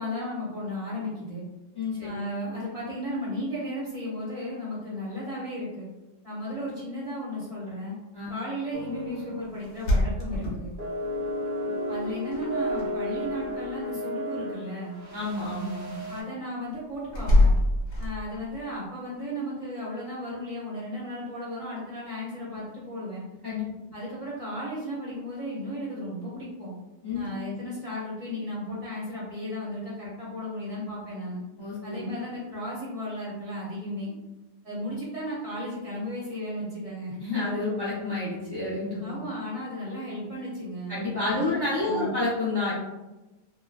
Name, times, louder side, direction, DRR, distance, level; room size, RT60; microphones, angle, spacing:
voice 1, 0.0-1.4 2.0-5.9 6.2-8.0 8.3-10.7 11.9-15.0 16.1-17.6 18.0-23.2 23.9-26.8 27.1-31.4 31.8-34.1 34.6-37.2 39.0-41.0 41.3-42.1, equal, 30° right, -8 dB, 0.8 m, -35 dB
voice 2, 1.7-2.1 8.1-8.3 15.1-16.0 23.4-23.7 27.0-27.2 31.6-32.1 37.2-39.1 40.9-42.7, left 2 dB, 25° left, -9 dB, 0.6 m, -29 dB
sound 1, 8.7-9.5 9.8-10.0 10.8-16.2, left 1 dB, 60° right, 0.5 m, -33 dB
sound 2, 9.6-11.2 12.3-12.9 13.1-13.7 17.1-18.5, left 1 dB, 60° left, 0.8 m, -24 dB
3.1 x 2.2 x 2.4 m, 1.1 s
omnidirectional pair, 1.7 m